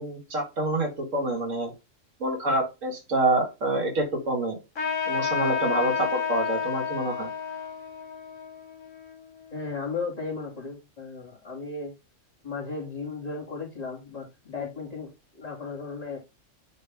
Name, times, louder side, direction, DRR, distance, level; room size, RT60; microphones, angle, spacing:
voice 1, 0.0-1.7 2.2-4.6 5.1-7.3, right 2 dB, 90° right, 1 dB, 2.3 m, -27 dB
Trumpet, 4.7-9.7, left 6 dB, 75° left, 2.4 m, -31 dB
voice 2, 9.5-11.9 12.4-15.1 15.3-16.2, left 4 dB, 30° left, -4 dB, 2.7 m, -35 dB
9.3 x 3.3 x 3.5 m, 0.26 s
omnidirectional pair, 1.3 m